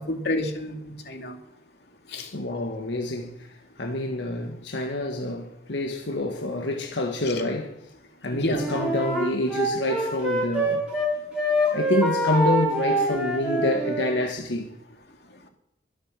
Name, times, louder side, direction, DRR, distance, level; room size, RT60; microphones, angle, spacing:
voice 1, 0.0-1.4 2.1-2.3 7.3-7.4 8.3-8.7, left 1 dB, 65° left, 2.7 m, -29 dB
voice 2, 2.2-3.5 3.8-7.8 8.2-10.8 11.7-14.7, left 2 dB, 85° left, 1.6 m, -27 dB
Wind instrument woodwind instrument, 8.5-11.1 11.3-14.1, right 1 dB, 5° right, 6.1 m, -25 dB
23.0 x 8.2 x 7.4 m
head